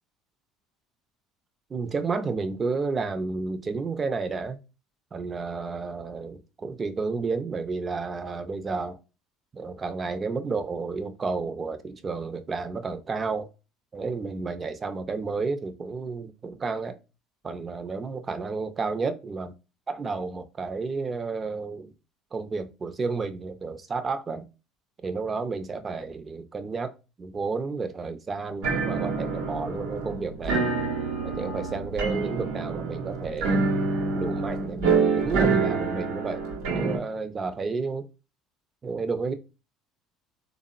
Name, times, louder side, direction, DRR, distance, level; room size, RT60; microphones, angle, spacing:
voice 1, 1.7-4.6 5.1-9.0 9.5-13.5 13.9-17.0 17.4-19.5 19.9-21.9 22.3-24.5 25.0-30.7 31.2-33.6 34.1-38.1 38.8-39.3, right 4 dB, 30° right, 0.5 m, -31 dB
sound 1, 28.6-37.0, right 4 dB, 85° right, 0.8 m, -27 dB
3.4 x 2.0 x 2.4 m
supercardioid pair, 80°, 0 cm